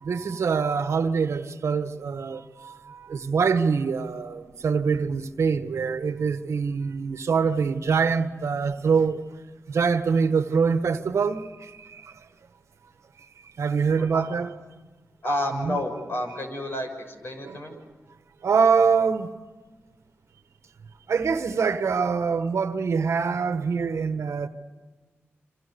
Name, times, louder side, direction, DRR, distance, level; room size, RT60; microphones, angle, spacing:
voice 1, 0.0-9.2 9.7-12.3 13.6-14.5 15.5-15.8 17.4-17.8 18.4-19.3 21.1-24.5, right 5 dB, 80° right, 1.4 m, -24 dB
voice 2, 15.2-17.7, left 1 dB, 50° left, 6.4 m, -30 dB
28.0 x 27.0 x 7.0 m
cardioid pair, 65°, 5 cm